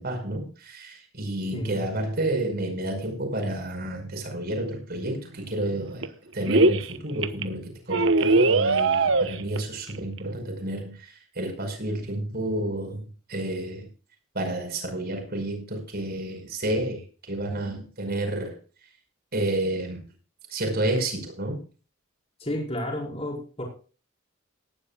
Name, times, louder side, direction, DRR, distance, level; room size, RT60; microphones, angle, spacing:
voice 1, 0.0-6.1 6.3-13.0 13.3-13.9 14.3-18.6 19.3-20.0 20.5-21.6, right 1 dB, 50° right, 4 dB, 5.5 m, -30 dB
sound 1, 5.1-5.2 5.4-6.1 6.4-6.9 7.2-7.4 7.9-9.6 9.9-10.0 10.2-10.3, right 3 dB, 65° right, 1.1 m, -21 dB
voice 2, 22.4-23.6, left 1 dB, 30° left, 0 dB, 5.3 m, -31 dB
19.0 x 12.5 x 2.4 m, 0.36 s
head